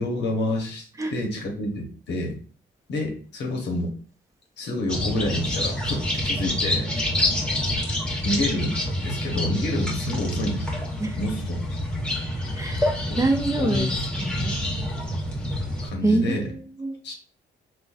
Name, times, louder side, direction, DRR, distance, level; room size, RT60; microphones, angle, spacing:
voice 1, 0.0-2.4 2.9-3.9 4.6-6.9 8.2-10.7 11.2-11.8 13.1-13.2 13.6-14.2 14.6-14.9 15.8-16.5 17.0-17.1, left 1 dB, 60° left, 1 dB, 0.9 m, -28 dB
sound 1, 4.9-15.9, left 1 dB, 5° left, 0.9 m, -27 dB
voice 2, 12.5-13.9 14.2-14.5 16.0-17.0, right 2 dB, 15° right, 4 dB, 0.6 m, -25 dB
3.8 x 2.2 x 2.4 m, 0.41 s
cardioid pair, 90°, 20 cm